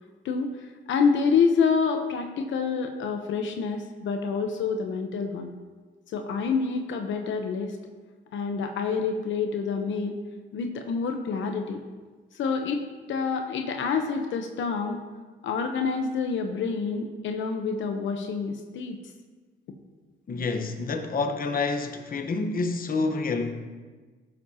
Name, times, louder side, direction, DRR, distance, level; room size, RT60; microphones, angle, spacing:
voice 1, 0.2-5.5 6.1-7.8 8.3-10.2 10.5-11.8 12.3-15.0 15.4-19.0, left 5 dB, 75° left, 1.0 m, -27 dB
voice 2, 20.3-23.7, left 3 dB, 45° left, 1.2 m, -28 dB
15.0 x 7.6 x 2.9 m
cardioid pair, 90°, 20 cm